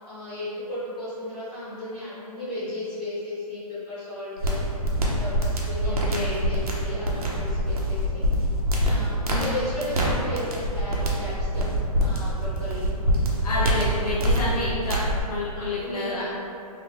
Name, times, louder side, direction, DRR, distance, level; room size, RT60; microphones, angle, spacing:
voice 1, 0.0-4.8 5.1-8.2 8.8-12.9 13.5-14.0 15.1-15.2 15.5-16.2, left 1 dB, 5° left, -21 dB, 0.5 m, -35 dB
sound 1, 4.4-15.2, equal, 70° right, 0.8 m, -25 dB
voice 2, 5.8-6.4 9.2-9.7 13.4-15.0 15.3-16.2, left 2 dB, 70° left, -8 dB, 0.7 m, -29 dB
3.4 x 2.8 x 3.3 m, 2.6 s
hypercardioid pair, 175°, 20 cm